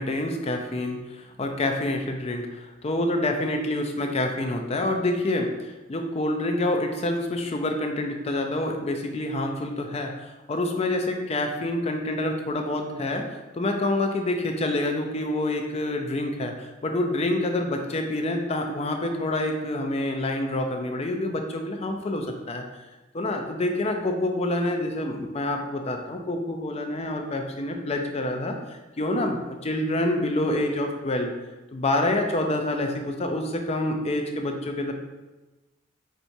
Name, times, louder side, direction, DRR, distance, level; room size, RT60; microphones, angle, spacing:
voice 1, 0.0-13.3 13.5-22.6 23.1-31.3 31.7-34.9, left 1 dB, 35° left, 3 dB, 0.5 m, -27 dB
4.5 x 4.0 x 2.7 m, 1.1 s
head